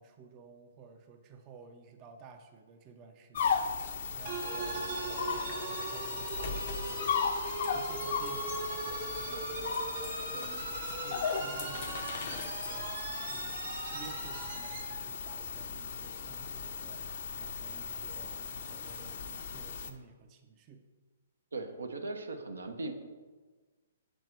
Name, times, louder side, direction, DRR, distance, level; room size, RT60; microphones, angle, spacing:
voice 1, 0.0-9.9 10.3-10.7 11.0-20.8, right 5 dB, 30° right, 6 dB, 0.5 m, -54 dB
sound 1, 3.3-19.9, left 5 dB, 50° left, 0.6 m, -36 dB
sound 2, 4.3-15.0, right 4 dB, 50° right, 0.9 m, -40 dB
voice 2, 21.5-22.9, right 3 dB, 80° right, 6 dB, 0.8 m, -38 dB
6.4 x 4.5 x 4.4 m, 1.4 s
figure-of-eight pair, 125°, 0 cm